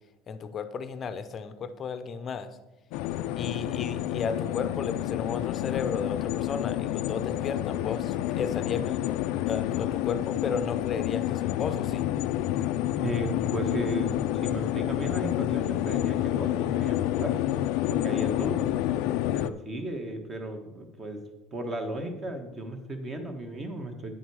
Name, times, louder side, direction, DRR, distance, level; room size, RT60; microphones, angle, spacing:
voice 1, 0.3-2.5 3.4-9.2 9.5-12.1, left 5 dB, 30° left, 11 dB, 0.7 m, -34 dB
sound 1, 2.9-19.5, left 13 dB, 65° left, 0.4 m, -29 dB
voice 2, 13.0-17.5 17.8-18.7 19.3-21.2 21.5-24.1, right 1 dB, 25° right, 6 dB, 1.3 m, -35 dB
9.6 x 7.7 x 4.8 m, 1.1 s
cardioid pair, 150°, 0 cm